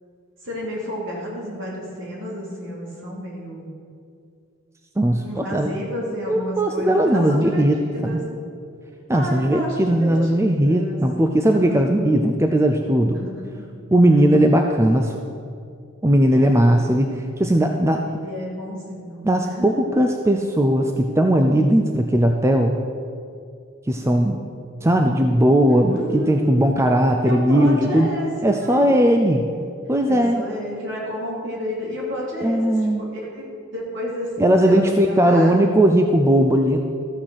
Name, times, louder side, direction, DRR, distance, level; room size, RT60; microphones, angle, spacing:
voice 1, 0.4-3.7 5.2-8.2 9.1-11.0 11.4-11.9 13.1-13.7 16.3-16.6 18.0-19.2 19.5-19.8 25.9-26.5 27.2-28.9 30.1-33.4 33.7-34.3 34.6-35.8, equal, 60° right, -4 dB, 3.0 m, -31 dB
voice 2, 5.0-5.7 6.3-8.2 9.1-13.2 13.9-15.2 16.0-18.0 19.2-22.8 23.9-24.4 24.8-28.1 28.4-29.5 29.9-30.4 32.4-33.0 34.4-36.8, right 1 dB, 15° right, 4 dB, 0.4 m, -18 dB
13.5 x 6.1 x 6.5 m, 2.4 s
head